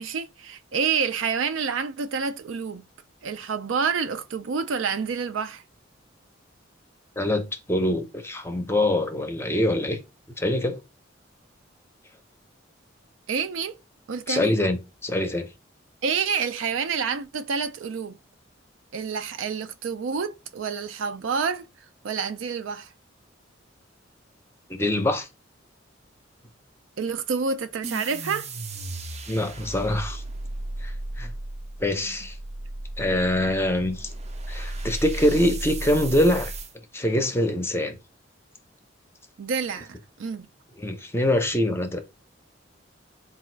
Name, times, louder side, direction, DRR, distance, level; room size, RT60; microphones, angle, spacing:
voice 1, 0.0-2.8 3.2-5.6 13.3-13.8 14.1-14.5 16.0-18.2 18.9-21.7 22.0-22.9 27.0-28.5 32.0-32.1 39.4-40.5, right 5 dB, 85° right, 0.4 m, -28 dB
voice 2, 7.7-10.0 10.4-10.8 14.3-15.5 24.7-25.3 29.3-30.2 30.8-31.3 31.8-32.4 33.0-34.1 34.5-36.5 36.9-38.0 40.8-42.0, left 1 dB, 15° left, 0.5 m, -24 dB
sound 1, 27.8-36.7, right 2 dB, 35° right, 0.5 m, -35 dB
4.0 x 2.4 x 4.3 m
head